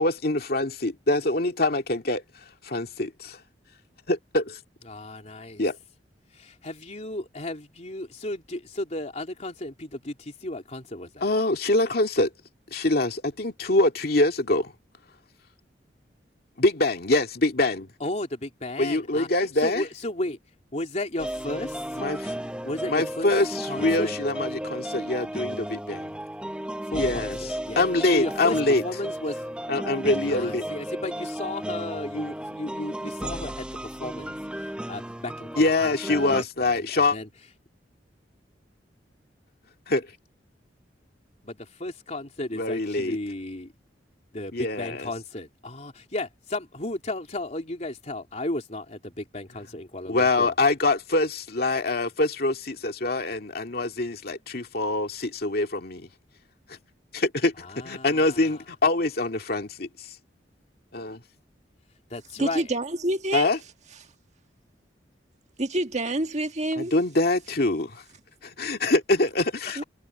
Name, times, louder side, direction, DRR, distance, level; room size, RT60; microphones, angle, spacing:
voice 1, 0.0-2.2 2.6-3.4 4.1-4.6 5.6-5.8 11.2-12.3 12.7-14.7 16.6-17.9 18.8-19.8 22.0-22.3 22.9-26.1 26.9-27.4 27.8-28.8 29.7-30.6 35.6-37.2 39.9-40.1 42.6-43.2 44.5-45.1 50.1-56.1 57.1-57.5 57.8-60.1 60.9-61.2 63.3-63.6 66.8-68.0 68.4-69.8, left 2 dB, 60° left, 2.2 m, -24 dB
voice 2, 4.8-5.6 6.3-11.2 18.0-19.3 19.6-20.4 20.7-22.0 22.6-23.3 23.7-24.1 26.8-27.8 28.1-29.4 30.3-37.3 41.4-43.7 44.3-50.5 57.6-58.6 62.1-62.7 69.7-69.8, left 1 dB, 40° left, 3.5 m, -34 dB
sound 1, 21.2-36.4, right 1 dB, 5° right, 0.9 m, -34 dB
voice 3, 62.4-63.6 65.6-66.9 69.8-69.9, right 1 dB, 40° right, 1.6 m, -27 dB
head